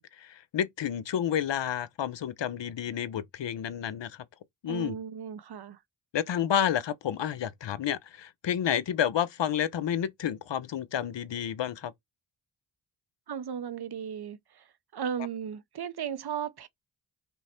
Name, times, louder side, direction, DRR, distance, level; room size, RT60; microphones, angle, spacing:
voice 1, 0.0-4.2 4.6-5.0 6.1-11.9, left 9 dB, 60° left, 0.8 m, -30 dB
voice 2, 4.7-5.8 13.3-14.7 14.9-16.7, right 8 dB, 55° right, 0.8 m, -36 dB
5.4 x 2.1 x 4.3 m
cardioid pair, 55°, 48 cm